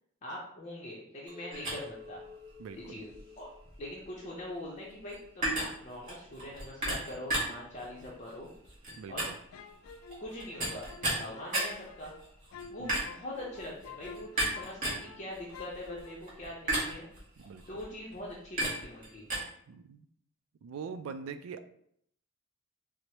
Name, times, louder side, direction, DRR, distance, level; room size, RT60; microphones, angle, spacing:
voice 1, 0.2-2.2 2.7-3.1 3.4-3.5 3.8-8.5 9.1-9.2 10.2-10.9 11.1-12.1 12.7-17.1 17.7-19.3, left 1 dB, 35° left, -5 dB, 0.6 m, -43 dB
Chink clink, 1.3-6.4, left 4 dB, 20° right, 1.0 m, -53 dB
sound 1, 1.5-19.4, right 1 dB, 40° right, 1.4 m, -36 dB
voice 2, 2.6-3.0 9.0-9.3 12.8-12.9 17.4-17.6 19.7-20.1 20.6-21.7, right 6 dB, 90° right, 10 dB, 0.3 m, -43 dB
sound 2, 9.5-15.2 15.5-16.1, left 4 dB, 85° left, 0.3 m, -49 dB
4.6 x 2.0 x 2.8 m, 0.69 s
head